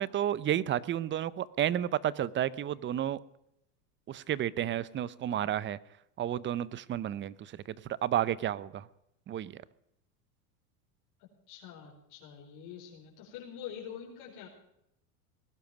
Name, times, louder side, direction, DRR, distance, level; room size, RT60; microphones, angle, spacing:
voice 1, 0.0-3.2 4.1-5.8 6.2-7.8 8.0-8.9 9.3-9.6, right 11 dB, 25° right, 20 dB, 0.7 m, -31 dB
voice 2, 11.5-14.5, left 8 dB, 55° left, -2 dB, 4.8 m, -45 dB
20.0 x 11.5 x 6.0 m, 0.80 s
supercardioid pair, 115°, 45 cm